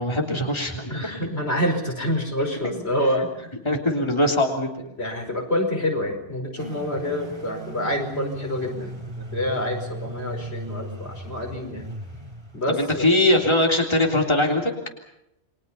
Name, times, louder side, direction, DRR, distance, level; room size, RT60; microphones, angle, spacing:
voice 1, 0.0-1.2 2.6-2.8 3.7-4.9 12.7-14.7, left 1 dB, 25° left, 1 dB, 3.5 m, -22 dB
voice 2, 0.9-3.3 5.0-11.9 12.5-13.1, left 1 dB, 85° left, 2 dB, 5.5 m, -27 dB
sound 1, 6.6-12.6, right 1 dB, 25° right, 4.2 m, -37 dB
29.5 x 23.0 x 5.7 m, 0.81 s
omnidirectional pair, 1.1 m